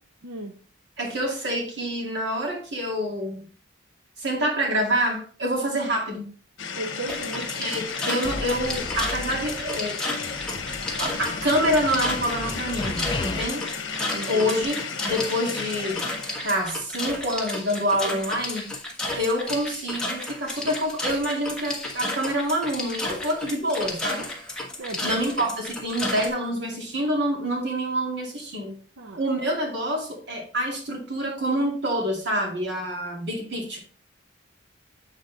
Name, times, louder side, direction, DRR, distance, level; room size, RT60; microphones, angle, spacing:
voice 1, 0.2-0.5 6.8-7.5 14.1-14.6 24.8-25.3 29.0-29.5, right 2 dB, 75° right, 4 dB, 0.7 m, -36 dB
voice 2, 1.0-3.5 4.2-6.3 7.6-10.0 11.0-13.6 14.3-14.8 15.0-16.0 16.4-18.7 19.1-24.3 25.0-28.8 29.2-33.8, equal, 55° right, 1 dB, 2.2 m, -27 dB
sound 1, 6.6-16.6, left 6 dB, 65° left, 1.0 m, -34 dB
sound 2, 7.1-26.3, left 2 dB, 5° left, 1.2 m, -32 dB
sound 3, 8.2-9.9 10.2-13.4, left 2 dB, 25° left, 0.5 m, -35 dB
8.2 x 4.0 x 3.9 m, 0.39 s
head